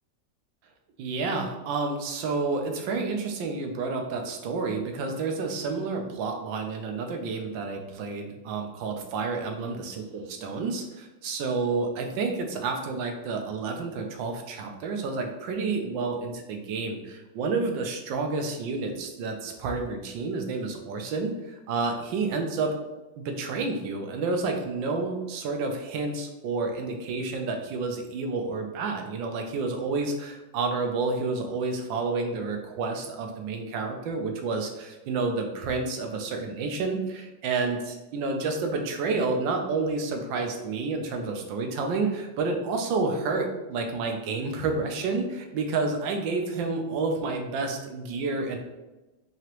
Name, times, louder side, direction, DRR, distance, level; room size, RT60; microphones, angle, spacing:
voice 1, 1.0-22.7 23.2-48.6, right 3 dB, 90° right, 4 dB, 1.4 m, -30 dB
4.8 x 2.9 x 2.9 m, 1.1 s
omnidirectional pair, 2.0 m